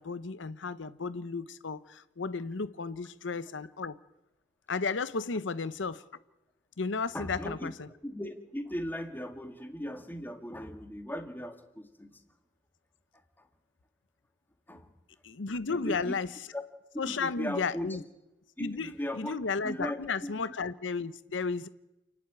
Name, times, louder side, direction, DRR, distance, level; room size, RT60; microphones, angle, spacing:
voice 1, 0.0-4.0 4.7-6.0 6.8-7.7 15.2-16.3 17.0-18.0 18.6-21.7, left 4 dB, 85° left, 0.8 m, -33 dB
voice 2, 7.1-7.7 8.0-12.2 13.1-13.5 14.7-14.9 15.7-16.2 16.5-16.6 16.9-18.0 18.6-20.3, equal, 10° left, 2.0 m, -38 dB
28.5 x 11.0 x 8.8 m
head